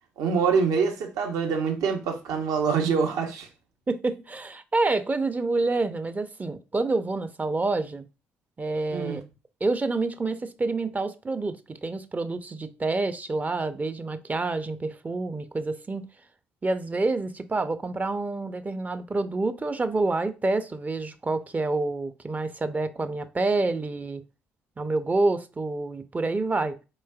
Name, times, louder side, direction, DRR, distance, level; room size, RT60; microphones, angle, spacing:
voice 1, 0.2-3.5 8.9-9.2, right 5 dB, 65° right, 0.8 m, -25 dB
voice 2, 3.9-8.0 8.6-9.2 9.6-16.0 16.6-24.2 24.8-26.7, right 3 dB, 25° right, 0.5 m, -28 dB
4.4 x 3.1 x 2.3 m
figure-of-eight pair, 45°, 7 cm